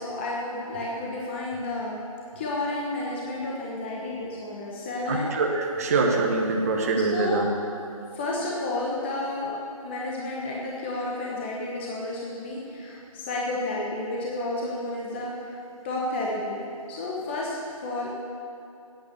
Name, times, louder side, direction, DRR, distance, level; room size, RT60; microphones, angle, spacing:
voice 1, 0.0-2.0 2.3-5.3 7.1-7.5 8.1-9.5 9.8-15.6 15.8-18.1, left 2 dB, 20° left, -4 dB, 1.1 m, -31 dB
voice 2, 5.1-7.5, right 3 dB, 25° right, 0 dB, 1.1 m, -24 dB
14.0 x 9.5 x 6.8 m, 2.6 s
figure-of-eight pair, 165°, 19 cm